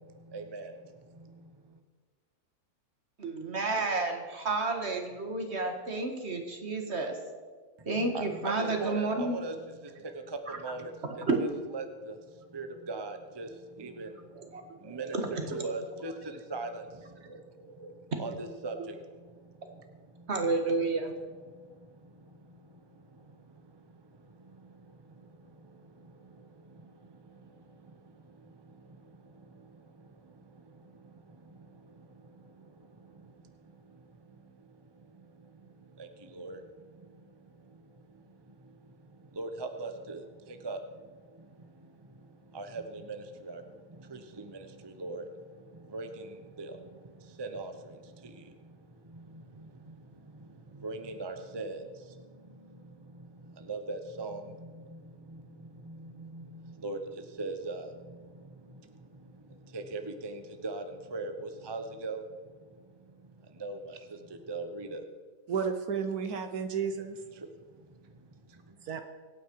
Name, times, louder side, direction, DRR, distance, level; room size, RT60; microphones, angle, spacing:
voice 1, 0.0-1.8 7.8-11.5 11.7-20.3 21.3-65.1 67.3-69.0, right 3 dB, 20° right, 0.8 m, -43 dB
voice 2, 3.2-7.2 7.9-9.3 10.5-10.6 11.0-11.4 13.8-13.9 14.3-15.4 17.3-17.4 17.8-18.0 20.3-21.1, right 3 dB, 45° right, 2.1 m, -31 dB
voice 3, 65.5-67.2 68.9-69.0, right 6 dB, 75° right, 1.4 m, -32 dB
24.5 x 9.2 x 4.7 m
omnidirectional pair, 1.6 m